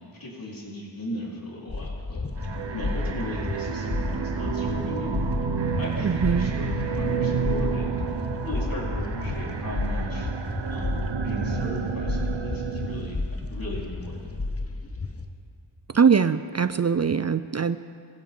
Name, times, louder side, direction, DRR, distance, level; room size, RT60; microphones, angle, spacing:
voice 1, 0.2-2.2 2.7-5.2 5.8-10.3 10.7-13.2 13.5-14.3, left 1 dB, 45° left, -5 dB, 4.3 m, -36 dB
sound 1, 1.7-15.3, left 3 dB, 30° left, 1.2 m, -32 dB
sound 2, 2.4-13.1, right 6 dB, 65° right, 1.0 m, -30 dB
voice 2, 6.0-6.5 15.9-17.8, right 6 dB, 35° right, 13 dB, 0.4 m, -22 dB
22.0 x 15.5 x 3.8 m, 2.3 s
wide cardioid pair, 55°, 47 cm